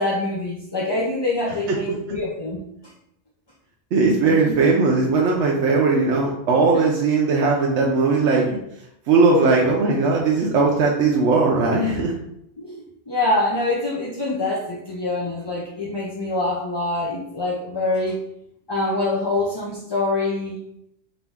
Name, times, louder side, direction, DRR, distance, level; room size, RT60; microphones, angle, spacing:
voice 1, 0.0-2.6 4.2-4.6 6.7-6.8 9.3-9.5 12.6-18.2 18.7-20.6, left 2 dB, 35° left, -5 dB, 0.4 m, -25 dB
voice 2, 3.9-8.5 9.1-12.1, right 4 dB, 85° right, -2 dB, 0.9 m, -18 dB
3.9 x 2.6 x 3.5 m, 0.77 s
omnidirectional pair, 1.2 m